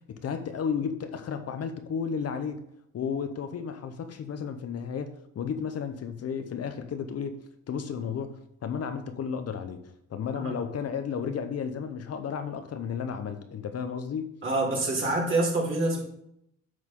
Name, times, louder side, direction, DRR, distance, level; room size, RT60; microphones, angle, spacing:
voice 1, 0.1-2.6 2.9-7.4 7.7-9.8 10.1-14.3, left 6 dB, 55° left, 8 dB, 0.9 m, -33 dB
voice 2, 14.4-16.0, right 2 dB, 40° right, -3 dB, 3.7 m, -26 dB
9.7 x 6.3 x 3.8 m, 0.75 s
cardioid pair, 90°, 30 cm